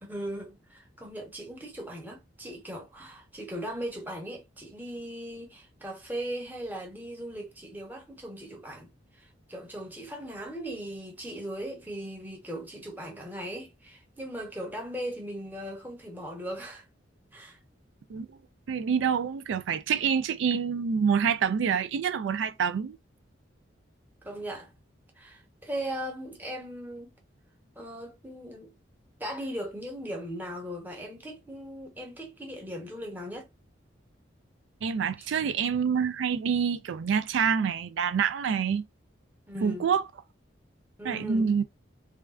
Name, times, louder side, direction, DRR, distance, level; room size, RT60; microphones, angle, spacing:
voice 1, 0.0-8.9 9.1-16.9 17.3-17.6 24.2-24.7 25.2-27.1 27.8-28.7 29.2-33.5 35.2-35.3 39.5-39.9 41.0-41.5, equal, 10° right, 0.9 m, -38 dB
voice 2, 18.7-23.0 34.8-38.8 39.6-40.0 41.0-41.6, right 6 dB, 75° right, 0.3 m, -27 dB
3.3 x 2.4 x 2.3 m
head